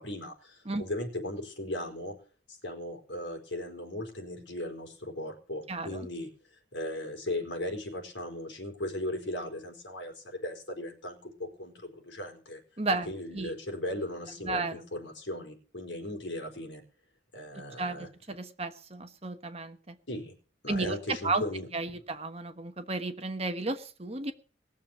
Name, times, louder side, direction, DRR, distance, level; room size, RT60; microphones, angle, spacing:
voice 1, 0.0-2.1 2.5-6.3 6.7-12.6 13.1-16.8 17.3-18.1 20.1-20.3 20.6-21.7, left 1 dB, 70° left, 4 dB, 4.6 m, -37 dB
voice 2, 5.7-6.1 12.8-13.5 14.4-14.8 17.5-20.0 20.7-21.0 21.2-21.4 21.7-24.3, right 3 dB, 30° right, 8 dB, 1.2 m, -33 dB
19.5 x 7.3 x 7.3 m, 0.41 s
head